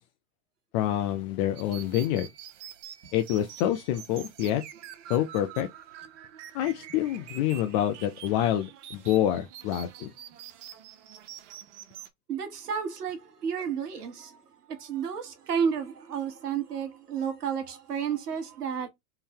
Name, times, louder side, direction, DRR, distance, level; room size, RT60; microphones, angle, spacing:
voice 1, 0.7-2.3 3.1-4.6 5.1-5.7 6.5-10.1, left 12 dB, 30° left, 0.4 m, -27 dB
sound 1, 1.5-12.1, right 11 dB, 50° right, 0.8 m, -46 dB
voice 2, 12.3-14.4 14.7-18.9, right 7 dB, 80° right, 1.3 m, -31 dB
3.8 x 2.6 x 2.8 m
hypercardioid pair, 105°, 46 cm